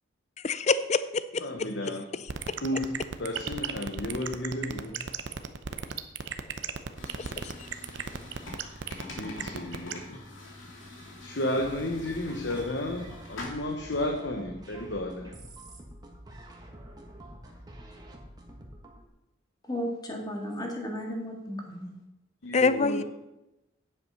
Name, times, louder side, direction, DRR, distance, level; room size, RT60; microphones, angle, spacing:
voice 1, 0.4-1.4 7.2-7.5 22.5-23.0, left 4 dB, 35° left, 14 dB, 0.5 m, -26 dB
voice 2, 1.4-2.1 2.6-5.1 9.2-10.2 11.2-15.3 22.4-23.0, left 1 dB, 65° left, 3 dB, 1.0 m, -33 dB
sound 1, 2.3-9.9, right 6 dB, 65° right, 0.7 m, -34 dB
sound 2, 6.9-13.4, left 2 dB, 85° left, 2.7 m, -45 dB
sound 3, 11.6-19.0, right 1 dB, 20° right, 1.4 m, -47 dB
voice 3, 19.7-21.9, equal, 20° left, 1 dB, 1.8 m, -34 dB
9.6 x 7.8 x 5.6 m, 0.96 s
head